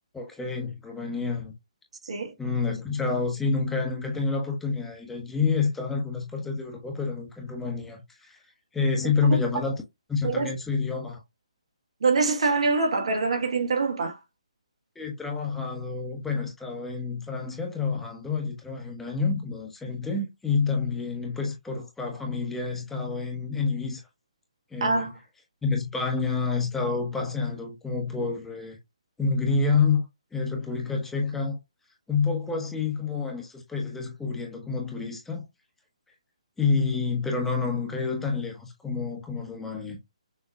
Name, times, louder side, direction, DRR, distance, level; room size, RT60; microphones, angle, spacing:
voice 1, 0.1-1.5 2.4-8.4 8.7-9.8 10.1-11.2 14.9-24.0 24.7-25.1 25.6-28.8 29.2-30.0 30.3-31.6 32.1-35.5 36.6-40.0, left 4 dB, 5° left, 1.3 m, -28 dB
voice 2, 2.0-2.3 10.2-10.5 12.0-14.2 24.8-25.1, right 4 dB, 65° right, 1.5 m, -24 dB
6.6 x 3.1 x 2.4 m
figure-of-eight pair, 140°, 4 cm